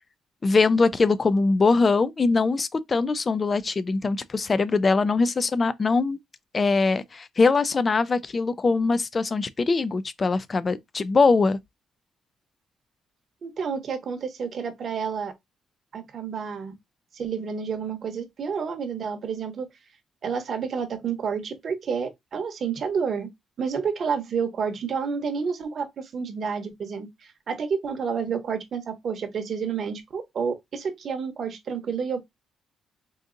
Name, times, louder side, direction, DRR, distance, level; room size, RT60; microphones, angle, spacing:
voice 1, 0.4-6.2 6.5-11.6, left 4 dB, 30° left, 0.3 m, -22 dB
voice 2, 13.4-15.3 15.9-16.7 17.1-19.7 20.2-23.3 23.6-32.3, right 6 dB, 50° right, 0.8 m, -30 dB
3.8 x 2.6 x 2.5 m
cardioid pair, 115°, 0 cm